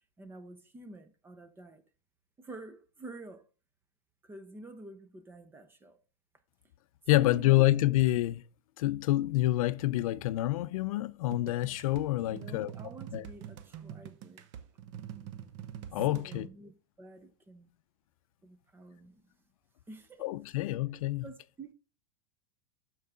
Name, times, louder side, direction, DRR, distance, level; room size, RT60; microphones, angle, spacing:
voice 1, 0.2-1.8 2.4-3.5 4.2-6.0 7.1-7.6 12.3-14.5 16.1-17.7 18.4-19.3 19.9-20.3 21.2-21.7, right 2 dB, 10° right, 0.8 m, -49 dB
voice 2, 7.1-8.4 8.8-12.7 13.1-13.2 15.9-16.5 20.2-21.2, left 16 dB, 75° left, 0.5 m, -27 dB
sound 1, 11.3-16.5, right 10 dB, 55° right, 1.0 m, -45 dB
12.5 x 4.7 x 3.7 m
supercardioid pair, 150°, 18 cm